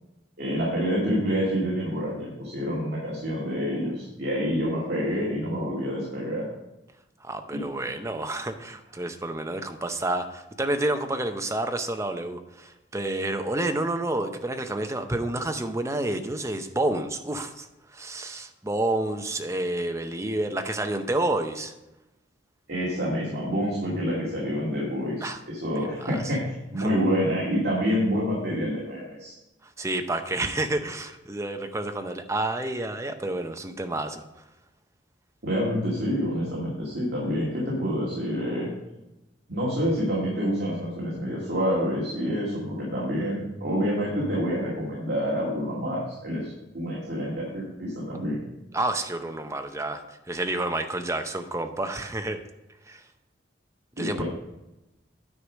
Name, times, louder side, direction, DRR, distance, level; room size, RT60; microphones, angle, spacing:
voice 1, 0.4-6.5 7.5-7.6 22.7-26.4 26.7-29.3 35.4-38.7 39.5-48.4 54.0-54.2, equal, 60° right, -6 dB, 2.3 m, -27 dB
voice 2, 7.2-17.7 17.9-21.7 25.2-25.4 25.8-26.3 26.8-26.9 29.8-34.2 48.7-52.4 52.9-53.0 54.0-54.2, right 2 dB, 15° right, 7 dB, 0.6 m, -29 dB
9.6 x 4.8 x 6.2 m, 0.96 s
head